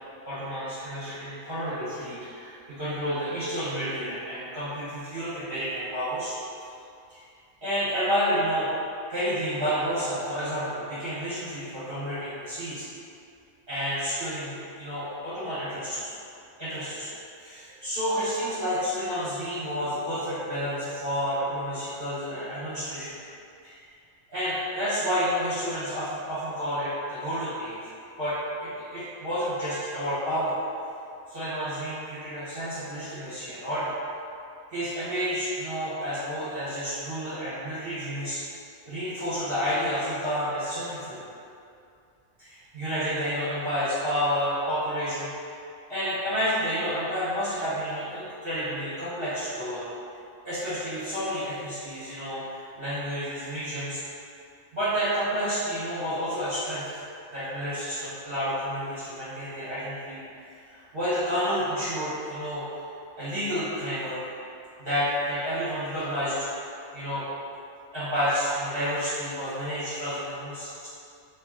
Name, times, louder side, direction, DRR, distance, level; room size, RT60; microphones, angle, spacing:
voice 1, 0.2-6.3 7.1-7.2 7.6-8.7 9.1-12.9 13.7-16.1 16.6-17.1 17.4-23.1 23.6-23.8 24.3-27.9 28.2-30.5 31.3-33.9 34.7-38.4 38.9-41.3 42.4-45.3 45.9-49.9 50.4-54.0 54.7-56.9 57.3-60.2 60.7-62.6 63.2-64.2 64.8-66.4 66.9-67.2 67.9-70.9, equal, 40° right, -15 dB, 1.4 m, -30 dB
3.4 x 3.1 x 3.7 m, 2.5 s
omnidirectional pair, 1.5 m